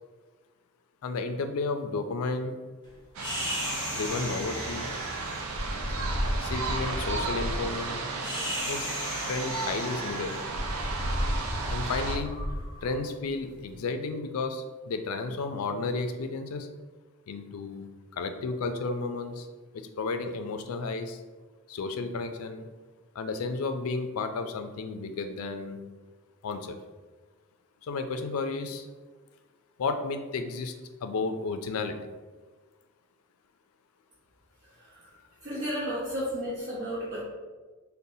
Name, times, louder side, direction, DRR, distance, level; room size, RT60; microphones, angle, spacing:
voice 1, 1.0-2.6 3.9-4.9 6.4-8.0 8.7-8.9 9.2-10.5 11.7-12.3 12.8-16.7 17.3-19.5 19.7-21.2 21.7-22.7 23.1-25.8 26.4-26.8 27.8-28.9 29.8-30.7 31.0-32.0, left 3 dB, 80° left, 7 dB, 0.4 m, -32 dB
sound 1, 3.1-12.2, right 3 dB, 85° right, 0.5 m, -34 dB
sound 2, 3.2-13.6, equal, 20° left, 0.7 m, -34 dB
voice 2, 34.8-35.1 35.4-37.2, equal, 55° right, -9 dB, 1.0 m, -33 dB
5.3 x 2.1 x 2.7 m, 1.3 s
head